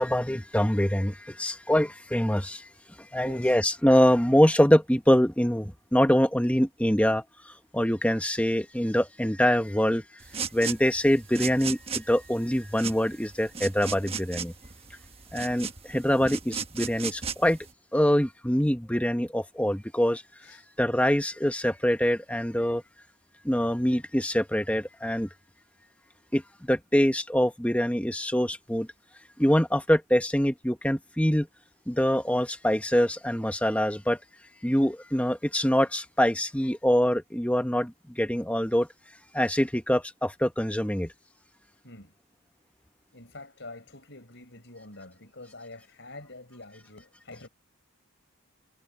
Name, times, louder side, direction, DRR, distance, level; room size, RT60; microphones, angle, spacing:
voice 1, 0.0-2.7 3.1-10.0 10.5-14.5 15.3-17.6 17.9-20.2 20.8-22.8 23.4-25.3 26.3-28.9 29.4-31.5 31.9-34.2 34.6-38.9 39.3-41.1, equal, 5° left, 1.4 m, -24 dB
voice 2, 3.1-3.5 20.4-20.7 41.8-42.1 43.1-47.5, left 2 dB, 55° left, 5.3 m, -46 dB
sound 1, 10.2-17.7, right 6 dB, 25° right, 1.3 m, -36 dB
head